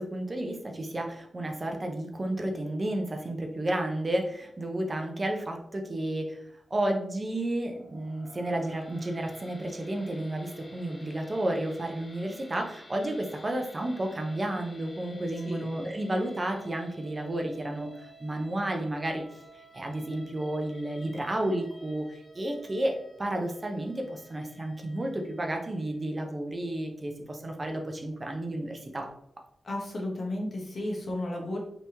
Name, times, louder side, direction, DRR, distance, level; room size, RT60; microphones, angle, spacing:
voice 1, 0.0-6.4 6.7-19.2 19.7-29.1, right 1 dB, 30° right, 3 dB, 0.5 m, -32 dB
sound 1, 7.6-25.9, equal, 25° left, 0.5 m, -53 dB
voice 2, 29.6-31.6, left 1 dB, 55° left, -2 dB, 1.0 m, -33 dB
3.4 x 2.9 x 2.7 m, 0.73 s
wide cardioid pair, 90°, 0 cm